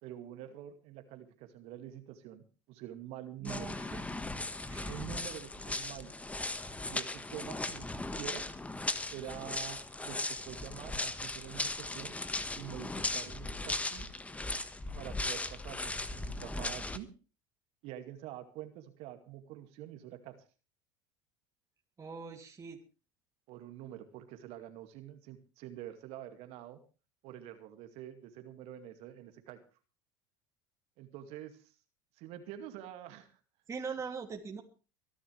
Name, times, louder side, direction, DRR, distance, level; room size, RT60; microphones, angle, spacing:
voice 1, 0.0-3.7 4.9-6.1 6.9-8.5 9.1-14.1 14.9-17.1 17.8-20.4 23.5-26.8 27.2-29.6 31.0-31.7 32.2-33.3, right 12 dB, 60° right, 8 dB, 2.3 m, -46 dB
voice 2, 3.4-4.1 4.7-5.0 22.0-22.8 33.7-34.6, right 5 dB, 25° right, 2 dB, 2.9 m, -41 dB
sound 1, 3.5-17.0, left 2 dB, 10° left, 1.6 m, -38 dB
23.5 x 11.5 x 3.4 m, 0.34 s
hypercardioid pair, 80°, 12 cm